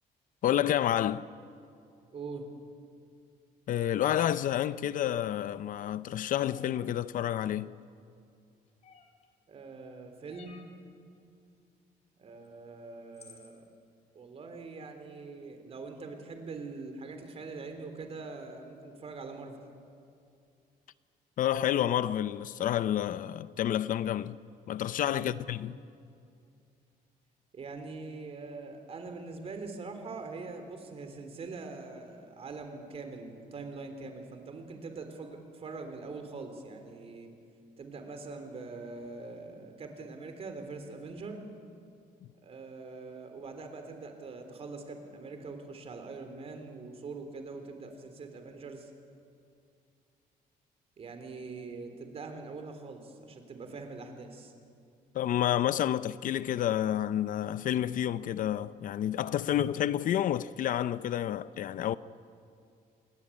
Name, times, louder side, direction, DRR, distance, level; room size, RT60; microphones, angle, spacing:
voice 1, 0.4-1.3 3.7-7.7 21.4-24.4 24.7-25.7 55.1-62.0, left 11 dB, 60° left, 0.6 m, -29 dB
voice 2, 2.1-2.5 9.5-10.6 12.2-13.6 14.2-19.6 25.1-25.4 27.5-37.3 37.8-41.4 42.4-48.9 51.0-54.5, right 3 dB, 40° right, 3.6 m, -43 dB
sound 1, 6.4-6.8 8.8-9.3 10.3-10.8 12.4-12.5 13.1-13.6, left 5 dB, 45° left, 3.2 m, -54 dB
28.5 x 21.0 x 8.6 m
cardioid pair, 150°, 15 cm